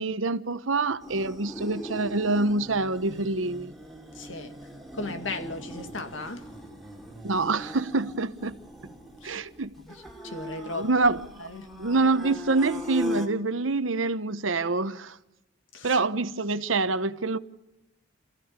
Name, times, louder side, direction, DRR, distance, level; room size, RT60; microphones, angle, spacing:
voice 1, 0.0-3.7 7.2-8.5 9.2-9.7 10.8-11.5 11.8-15.2 15.8-17.4, right 3 dB, 85° right, 1.1 m, -26 dB
sound 1, 1.0-13.3, equal, ahead, 3.0 m, -40 dB
voice 2, 4.1-4.5 4.9-6.5 9.2-9.4 9.8-11.1 11.4-11.7 15.7-16.0, left 3 dB, 70° left, 2.2 m, -37 dB
27.5 x 15.5 x 9.7 m
head